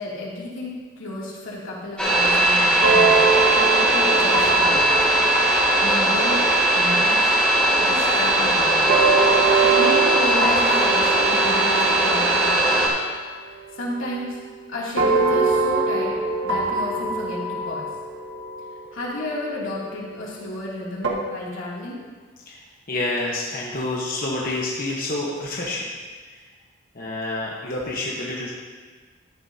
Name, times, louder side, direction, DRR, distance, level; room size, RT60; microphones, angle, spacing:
voice 1, 0.0-3.2 3.5-5.1 5.8-6.4 6.7-7.4 7.8-8.8 9.6-12.9 13.7-14.4 14.7-16.2 16.4-17.4 17.7-17.9 18.9-22.0, left 1 dB, 85° left, -6 dB, 2.9 m, -32 dB
sound 1, 2.0-12.9, right 1 dB, 5° left, 2.9 m, -19 dB
sound 2, 2.8-7.6 8.9-13.2 13.5-14.5 15.0-19.9 21.0-21.1, right 4 dB, 70° right, 1.5 m, -24 dB
voice 2, 22.9-25.8 26.9-28.5, left 2 dB, 45° left, -3 dB, 1.2 m, -28 dB
12.5 x 10.5 x 2.9 m, 1.5 s
head